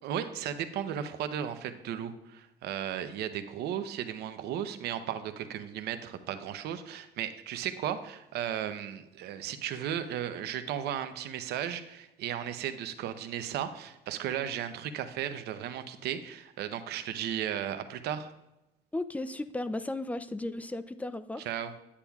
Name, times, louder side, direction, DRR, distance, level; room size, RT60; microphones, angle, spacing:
voice 1, 0.0-18.3 21.4-21.7, right 10 dB, 75° right, 10 dB, 0.7 m, -35 dB
voice 2, 18.9-21.5, left 2 dB, 10° left, 13 dB, 0.3 m, -35 dB
9.8 x 8.5 x 2.3 m, 0.94 s
cardioid pair, 110°, 17 cm